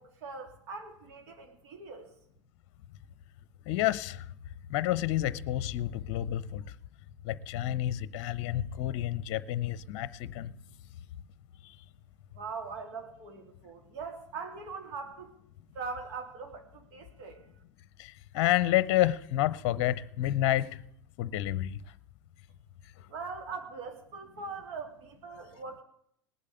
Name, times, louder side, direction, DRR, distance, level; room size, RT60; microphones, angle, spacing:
voice 1, 0.0-2.1 12.3-15.3 15.7-17.4 23.1-25.8, right 4 dB, 55° right, 3.3 m, -41 dB
voice 2, 3.7-4.2 4.7-6.6 7.2-10.5 11.6-11.7 18.0-20.8 21.2-21.8, left 13 dB, 50° left, 0.7 m, -29 dB
19.0 x 8.4 x 8.3 m
figure-of-eight pair, 80°, 16 cm